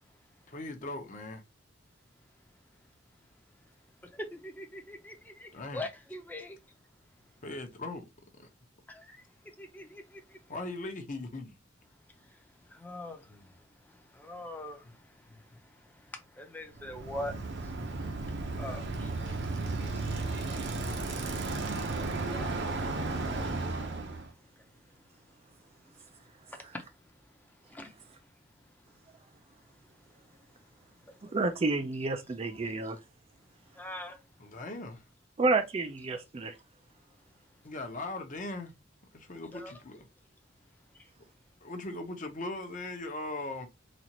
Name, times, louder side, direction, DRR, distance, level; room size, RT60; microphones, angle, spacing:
voice 1, 0.5-1.4 5.5-5.9 7.4-8.1 8.4-8.5 10.5-11.6 13.3-13.5 14.8-14.9 15.3-15.4 34.4-35.0 37.6-38.7 39.1-40.0 41.6-43.7, left 2 dB, 40° left, 0.8 m, -39 dB
voice 2, 4.3-6.6 8.9-9.1 9.6-10.0 12.7-13.2 14.2-14.8 16.4-17.3 18.6-19.1 20.7-21.0 22.3-23.4 26.7-26.8 27.7-27.9 33.8-34.2 39.5-39.8, left 1 dB, 10° left, 0.6 m, -42 dB
Bicycle, 16.7-24.3, right 3 dB, 60° right, 0.8 m, -34 dB
voice 3, 31.3-33.0 35.4-36.5, right 3 dB, 30° right, 0.4 m, -29 dB
4.2 x 2.4 x 2.9 m
head